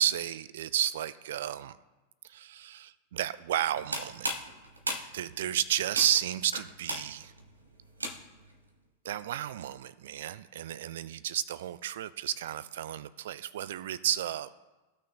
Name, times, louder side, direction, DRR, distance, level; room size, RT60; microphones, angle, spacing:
voice 1, 0.0-1.8 2.2-4.3 5.1-7.3 9.0-14.5, right 11 dB, 60° right, 16 dB, 0.4 m, -32 dB
sound 1, 3.7-8.5, right 1 dB, 80° right, 1.1 m, -37 dB
16.0 x 6.0 x 2.2 m, 1.1 s
figure-of-eight pair, 90°, 0 cm